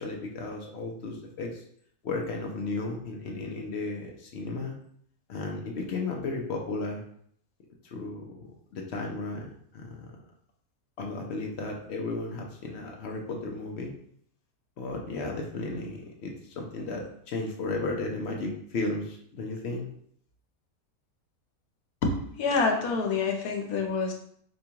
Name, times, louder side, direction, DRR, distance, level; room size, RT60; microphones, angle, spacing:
voice 1, 0.0-1.6 2.0-4.8 5.3-7.0 7.8-10.2 11.0-13.9 14.8-19.9, left 3 dB, 60° left, 1 dB, 0.7 m, -34 dB
voice 2, 22.0-24.1, left 4 dB, 80° left, 3 dB, 1.2 m, -27 dB
5.1 x 2.3 x 2.8 m, 0.65 s
omnidirectional pair, 1.6 m